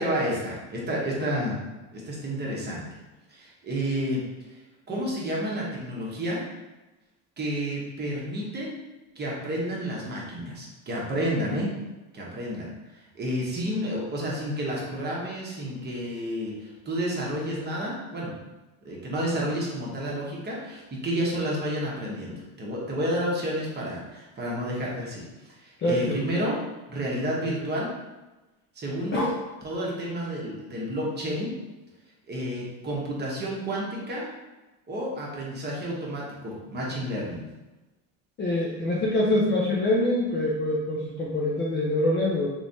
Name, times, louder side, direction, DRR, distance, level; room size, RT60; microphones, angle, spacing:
voice 1, 0.0-1.6 1.9-2.9 3.3-4.6 4.9-6.5 7.4-8.7 9.2-11.8 12.1-18.4 18.8-27.9 28.7-29.3 29.6-31.6 32.3-34.3 34.9-37.4, equal, 25° right, -4 dB, 0.9 m, -30 dB
voice 2, 25.8-26.2 29.1-29.2 38.4-42.5, left 1 dB, 25° left, -4 dB, 0.5 m, -25 dB
3.3 x 3.1 x 2.7 m, 1.1 s
supercardioid pair, 125°, 42 cm